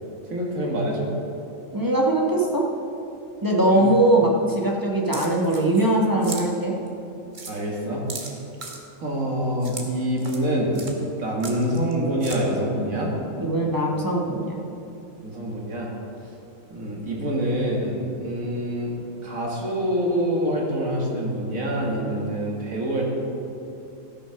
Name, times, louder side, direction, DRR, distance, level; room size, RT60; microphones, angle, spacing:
voice 1, 0.3-1.1 3.7-3.9 7.5-8.0 9.0-10.8 11.2-13.1 15.2-15.9 16.7-18.9 19.2-23.1, equal, 80° right, -2 dB, 2.3 m, -26 dB
voice 2, 1.7-2.6 3.4-6.7 13.4-14.6, right 1 dB, 15° right, -2 dB, 1.1 m, -21 dB
sound 1, 5.1-5.9 6.2-6.5 6.9-7.0 7.3-7.5 8.1-8.8 9.6-9.9 10.2-10.4 10.7-10.9 11.4-11.9 12.2-12.4, right 3 dB, 35° right, 1.3 m, -36 dB
13.5 x 6.3 x 5.9 m, 2.7 s
omnidirectional pair, 1.4 m